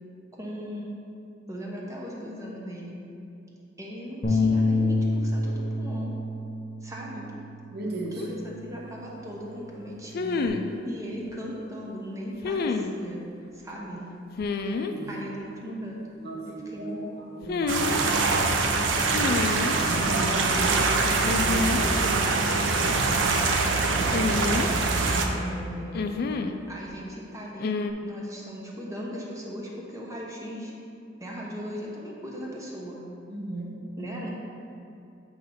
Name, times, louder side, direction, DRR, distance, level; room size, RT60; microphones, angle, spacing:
voice 1, 0.3-1.0 1.5-3.0 3.8-6.1 6.8-7.3 8.1-10.4 10.8-13.2 13.5-14.0 15.1-16.0 16.4-17.0 18.9-19.3 19.8-23.2 24.0-24.6 25.3-26.2 26.7-27.7 28.0-30.7 31.2-33.0 34.0-34.3, equal, 15° right, -3 dB, 1.0 m, -38 dB
sound 1, 4.2-10.5, left 2 dB, 35° left, 0.8 m, -29 dB
voice 2, 7.7-8.2 14.9-15.2 16.2-17.0 17.3-18.2 19.7-20.1 33.3-33.8, right 2 dB, 55° right, -2 dB, 0.9 m, -36 dB
sound 2, 8.2-8.3 10.1-10.7 12.4-12.9 14.4-14.9 17.4-18.0 19.1-19.8 21.2-21.9 22.2-22.3 24.1-25.0 25.9-26.6 27.6-27.9, left 4 dB, 55° left, 0.3 m, -28 dB
sound 3, 17.7-25.3, right 3 dB, 85° right, 0.6 m, -24 dB
7.2 x 3.1 x 5.5 m, 2.7 s
head